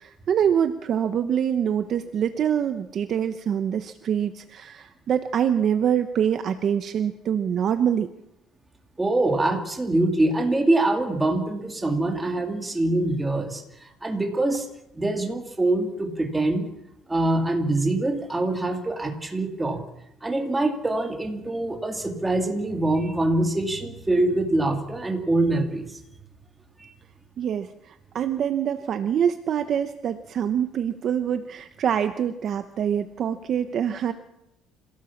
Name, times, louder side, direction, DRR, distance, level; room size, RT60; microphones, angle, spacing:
voice 1, 0.0-8.1 27.4-34.1, right 8 dB, 35° right, 9 dB, 0.9 m, -25 dB
voice 2, 9.0-14.7 14.9-16.7 17.1-19.8 20.2-26.0 26.8-26.9, right 2 dB, 10° right, 3 dB, 2.4 m, -24 dB
26.5 x 16.5 x 7.2 m, 0.86 s
cardioid pair, 170°, 0 cm